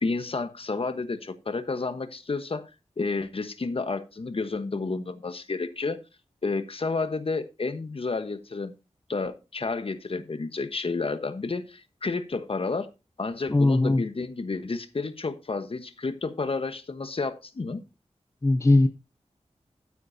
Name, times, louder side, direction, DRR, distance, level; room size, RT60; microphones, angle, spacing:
voice 1, 0.0-2.7 3.0-6.0 6.4-8.7 9.1-12.9 13.2-17.8, left 3 dB, 55° left, 1.2 m, -31 dB
voice 2, 13.5-14.0 18.4-18.9, left 2 dB, 25° left, 0.6 m, -19 dB
13.0 x 9.4 x 2.7 m
wide cardioid pair, 80°, 12 cm